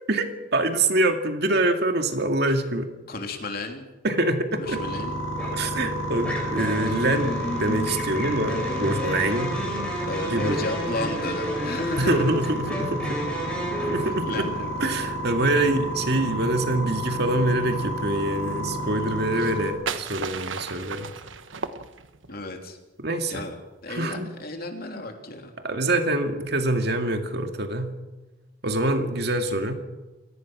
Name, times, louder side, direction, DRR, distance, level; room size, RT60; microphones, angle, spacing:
voice 1, 0.1-2.9 4.0-4.8 5.5-9.5 10.3-10.7 12.0-13.2 13.9-14.5 14.8-21.1 23.0-23.4 23.9-24.3 25.6-27.9 28.6-29.7, right 1 dB, 55° right, 6 dB, 2.3 m, -25 dB
voice 2, 3.1-3.9 4.5-5.2 6.9-7.0 10.1-12.2 14.0-14.9 19.4-19.5 22.3-22.8 23.3-23.5 23.8-25.5, left 2 dB, 50° left, 4 dB, 3.2 m, -33 dB
sound 1, 4.6-19.7, right 1 dB, 90° left, 6.5 m, -31 dB
sound 2, 5.4-5.7 6.2-14.0, equal, 5° left, 7.1 m, -31 dB
sound 3, 19.3-22.4, right 6 dB, 75° right, 1.3 m, -34 dB
28.0 x 17.5 x 6.2 m, 1.1 s
head